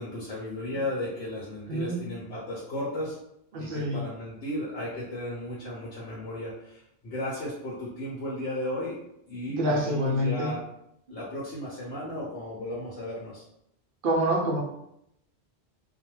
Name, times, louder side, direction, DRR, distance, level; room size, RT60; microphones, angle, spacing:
voice 1, 0.0-3.2 3.6-9.0 9.3-10.6 11.1-13.4, left 1 dB, 80° left, -5 dB, 1.0 m, -35 dB
voice 2, 1.7-2.0 3.5-4.0 9.5-10.5 14.0-14.6, equal, 60° right, -1 dB, 0.7 m, -26 dB
2.3 x 2.2 x 3.0 m, 0.76 s
omnidirectional pair, 1.1 m